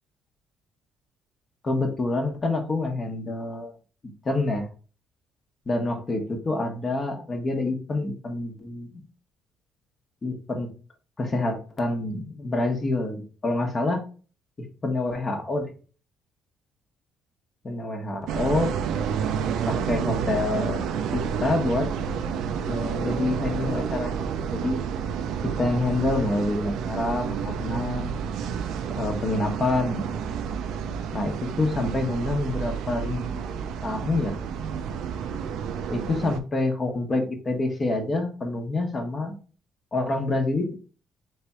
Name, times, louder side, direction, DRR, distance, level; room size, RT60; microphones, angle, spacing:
voice 1, 1.6-3.7 4.2-4.7 5.7-9.0 10.2-10.7 11.2-14.0 14.6-15.7 17.6-18.7 19.7-21.9 22.7-24.2 24.5-24.8 25.4-28.2 28.9-30.0 31.1-33.5 33.8-34.4 35.9-39.3 39.9-40.7, left 2 dB, 30° left, 4 dB, 1.0 m, -27 dB
sound 1, 18.3-36.4, right 7 dB, 75° right, 0.5 m, -30 dB
3.5 x 3.3 x 4.2 m, 0.37 s
cardioid pair, 130°, 0 cm